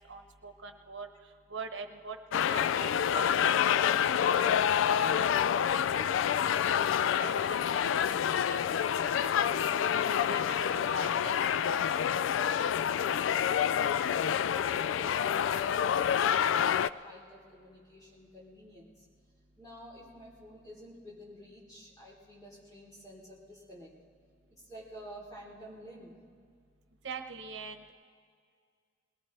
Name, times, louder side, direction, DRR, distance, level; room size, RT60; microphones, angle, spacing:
voice 1, 0.1-1.1 1.5-2.2 2.5-3.5 3.7-4.5 5.0-5.2 5.9-6.0 6.5-6.7 7.2-8.2 8.4-9.6 9.9-11.4 11.7-11.8 12.7-13.0 27.0-27.9, right 4 dB, 75° right, 6 dB, 1.0 m, -44 dB
sound 1, 2.3-16.9, left 8 dB, 90° left, 0.3 m, -27 dB
voice 2, 13.6-19.0 19.6-23.9 24.6-26.2, equal, 20° left, -6 dB, 3.6 m, -50 dB
22.0 x 18.0 x 3.3 m, 2.1 s
head